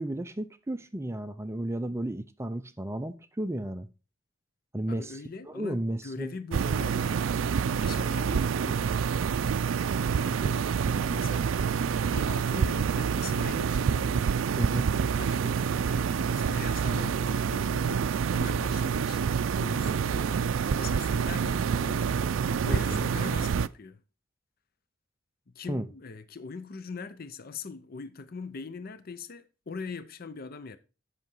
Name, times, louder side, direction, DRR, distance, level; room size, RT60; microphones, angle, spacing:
voice 1, 0.0-3.9 4.7-5.2 5.5-6.3 10.9-11.1 14.6-14.9 22.7-23.0 25.7-25.9, right 1 dB, 15° right, 0.5 m, -33 dB
voice 2, 4.9-8.9 10.2-10.8 11.1-11.6 12.1-14.4 15.1-19.2 19.5-22.2 22.6-24.0 25.5-30.8, left 4 dB, 50° left, 0.6 m, -42 dB
sound 1, 6.5-23.7, right 6 dB, 75° right, 0.4 m, -27 dB
8.2 x 5.9 x 5.3 m
head